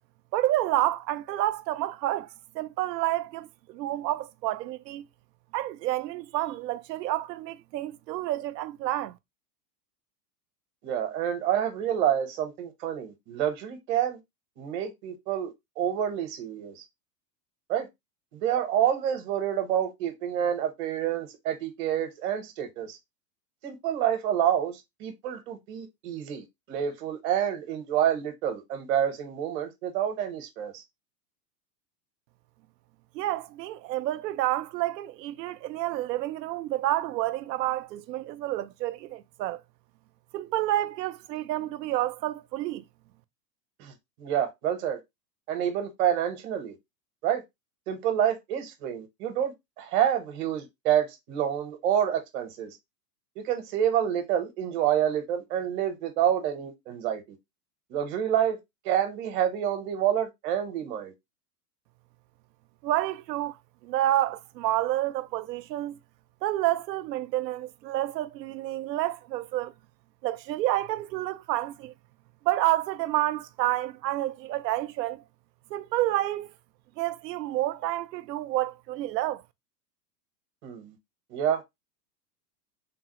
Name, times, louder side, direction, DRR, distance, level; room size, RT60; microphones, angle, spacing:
voice 1, 0.3-5.0 5.5-9.2 33.1-39.6 40.3-42.8 62.8-66.0 66.4-69.7 70.2-71.9 72.4-75.2 75.7-76.5 77.0-79.4, right 14 dB, 85° right, 0.5 m, -29 dB
voice 2, 10.8-14.2 14.6-16.8 17.7-17.9 18.3-23.0 23.6-30.8 43.8-45.0 45.5-46.8 47.2-47.4 47.9-52.8 53.4-57.4 57.9-58.6 58.8-61.1 80.6-80.9 81.3-81.6, right 10 dB, 45° right, 0.9 m, -28 dB
3.5 x 2.0 x 2.9 m
hypercardioid pair, 125°, 49 cm